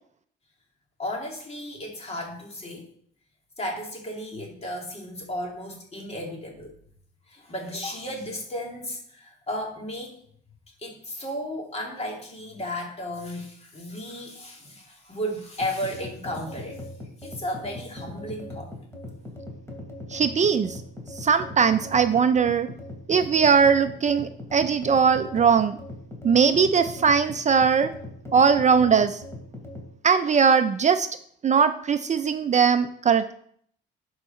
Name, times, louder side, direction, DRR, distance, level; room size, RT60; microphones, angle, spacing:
voice 1, 1.0-2.9 3.6-6.7 7.3-10.2 10.8-16.9 17.2-18.7, equal, 30° left, 0 dB, 2.9 m, -34 dB
sound 1, 15.6-29.9, left 1 dB, 15° left, 2.9 m, -39 dB
voice 2, 20.1-20.8 21.1-22.7 23.1-25.8 26.2-27.9 28.3-29.2 30.0-31.1 31.4-33.3, right 6 dB, 35° right, 9 dB, 0.5 m, -20 dB
11.5 x 4.8 x 4.4 m, 0.63 s
cardioid pair, 90°, 20 cm